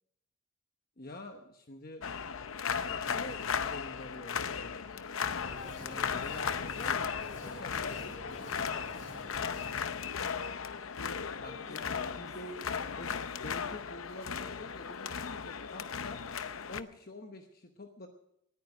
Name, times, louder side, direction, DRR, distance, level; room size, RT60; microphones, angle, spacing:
voice 1, 1.0-2.1 2.7-5.0 5.8-8.0 11.4-13.1 13.4-16.2 16.7-18.1, left 2 dB, 45° left, 5 dB, 1.0 m, -47 dB
sound 1, 2.0-16.8, left 6 dB, 85° left, 0.7 m, -36 dB
sound 2, 5.4-9.7, left 1 dB, 70° left, 5.1 m, -48 dB
voice 2, 5.5-6.5 7.3-10.9 11.5-12.9, equal, 15° left, 2 dB, 2.3 m, -55 dB
19.5 x 9.4 x 6.2 m, 0.80 s
head